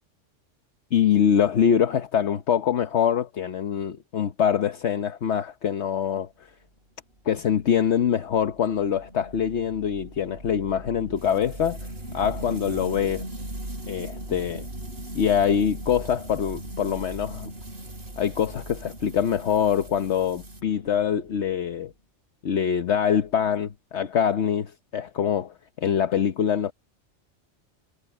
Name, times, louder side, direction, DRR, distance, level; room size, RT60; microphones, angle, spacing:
voice 1, 0.9-6.3 7.2-11.8 12.1-13.3 13.9-14.6 15.1-17.5 18.2-21.9 22.4-26.7, left 8 dB, 70° left, 1.2 m, -24 dB
sound 1, 7.4-21.9, right 1 dB, 55° right, 6.8 m, -39 dB
sound 2, 11.2-20.6, right 3 dB, 80° right, 3.5 m, -51 dB
omnidirectional pair, 1.2 m